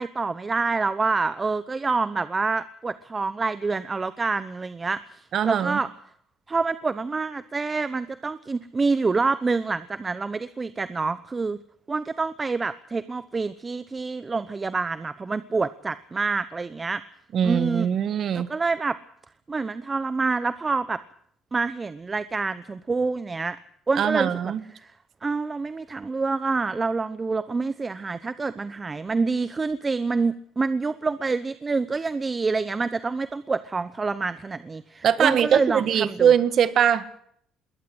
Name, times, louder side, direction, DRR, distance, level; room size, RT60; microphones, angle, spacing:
voice 1, 0.0-5.9 6.5-11.6 11.9-17.0 17.4-17.9 18.3-19.0 19.5-21.0 21.5-23.6 23.9-24.9 25.2-36.3, right 4 dB, 25° right, 14 dB, 0.9 m, -27 dB
voice 2, 5.3-5.8 17.3-18.5 24.0-24.6 35.0-37.1, right 8 dB, 55° right, 14 dB, 1.6 m, -21 dB
21.0 x 18.5 x 7.9 m, 0.68 s
cardioid pair, 105°, 0 cm